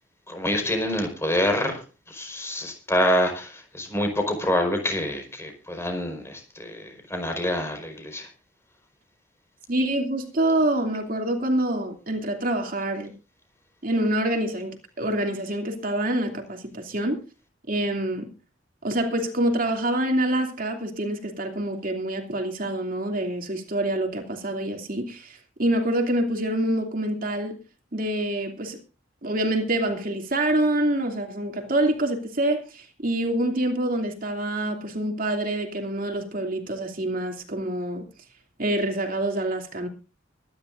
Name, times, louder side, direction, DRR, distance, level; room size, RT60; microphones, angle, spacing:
voice 1, 0.3-1.8 2.1-6.8 7.1-8.3, left 1 dB, 15° left, 4.8 m, -26 dB
voice 2, 9.7-13.1 13.8-17.2 17.7-18.3 18.8-27.5 27.9-28.8 29.2-38.0 38.6-39.9, right 1 dB, 45° right, 2.8 m, -26 dB
24.5 x 11.0 x 2.6 m
head